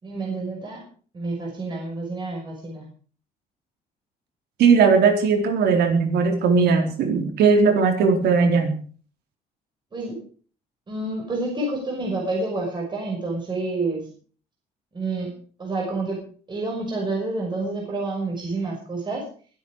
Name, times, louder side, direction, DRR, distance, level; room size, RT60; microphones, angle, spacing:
voice 1, 0.0-0.8 1.1-2.9 9.9-10.2 10.9-14.1 14.9-15.3 15.6-16.2 16.5-19.2, right 2 dB, 25° right, -1 dB, 5.8 m, -28 dB
voice 2, 4.6-8.7, right 5 dB, 75° right, 4 dB, 4.1 m, -18 dB
23.0 x 8.9 x 4.9 m, 0.42 s
cardioid pair, 110°, 17 cm